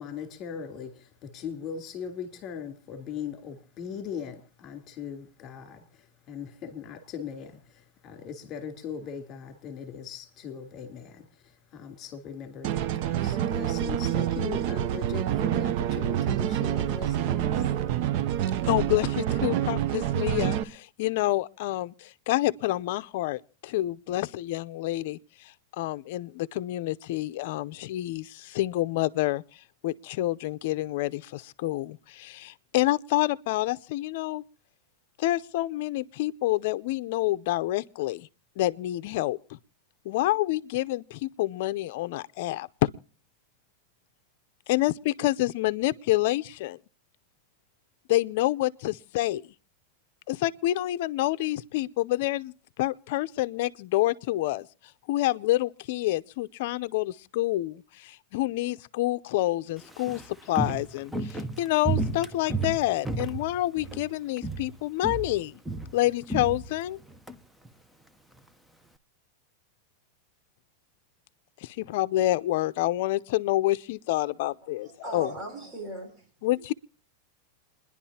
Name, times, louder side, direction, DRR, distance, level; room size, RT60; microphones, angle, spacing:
voice 1, 0.0-17.8, left 7 dB, 30° left, 3.4 m, -39 dB
sound 1, 12.6-20.6, right 11 dB, 50° right, 0.7 m, -27 dB
voice 2, 18.7-25.2 25.8-29.4 29.8-34.4 35.2-38.3 38.6-39.6 40.0-42.9 44.7-46.8 48.1-49.4 50.3-52.5 52.8-54.7 55.1-65.6 65.9-67.0 71.6-75.3 76.4-76.7, left 16 dB, 60° left, 0.6 m, -28 dB
Walk footsteps, 59.8-64.1 64.4-64.8 65.0-67.4 67.6-67.7, right 3 dB, ahead, 0.8 m, -32 dB
voice 3, 74.8-76.3, right 1 dB, 20° right, 6.1 m, -38 dB
28.5 x 11.0 x 2.8 m
supercardioid pair, 140°, 0 cm